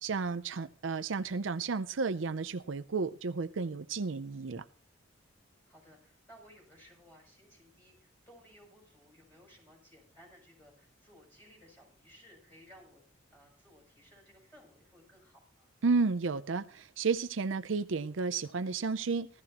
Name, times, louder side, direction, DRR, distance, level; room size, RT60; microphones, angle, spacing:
voice 1, 0.0-4.6 15.8-19.3, right 4 dB, 70° right, 0.6 m, -32 dB
voice 2, 5.7-13.0 13.3-15.7, equal, 10° left, 7.3 m, -59 dB
16.0 x 13.5 x 2.9 m
head